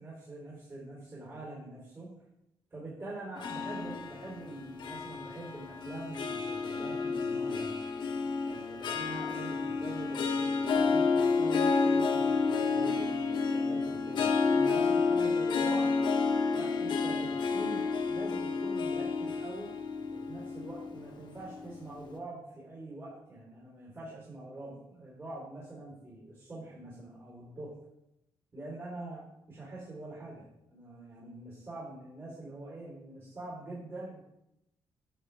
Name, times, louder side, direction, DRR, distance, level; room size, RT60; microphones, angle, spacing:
voice 1, 0.0-2.2 2.7-7.7 8.4-15.9 16.5-19.7 20.1-27.8 28.5-34.2, right 2 dB, 35° right, -6 dB, 4.0 m, -44 dB
Harp, 3.4-21.8, left 4 dB, 65° left, 1.2 m, -30 dB
10.5 x 7.2 x 3.5 m, 0.85 s
cardioid pair, 120°, 8 cm